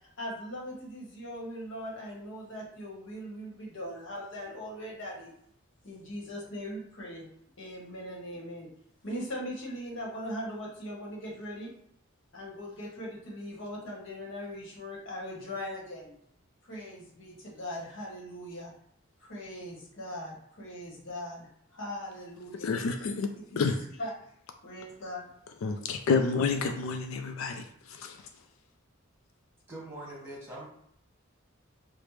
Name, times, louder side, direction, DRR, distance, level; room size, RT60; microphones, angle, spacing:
voice 1, 0.2-5.3 5.8-7.3 7.6-8.7 9.0-11.7 12.3-16.1 16.6-18.7 19.2-22.7 23.3-23.6 24.0-24.1 24.6-25.3, equal, 60° left, -3 dB, 1.1 m, -40 dB
voice 2, 22.6-23.8 25.6-28.2, left 4 dB, 85° left, 6 dB, 0.4 m, -29 dB
voice 3, 29.7-30.7, right 1 dB, 10° right, -6 dB, 1.4 m, -42 dB
5.0 x 2.1 x 3.1 m, 0.68 s
head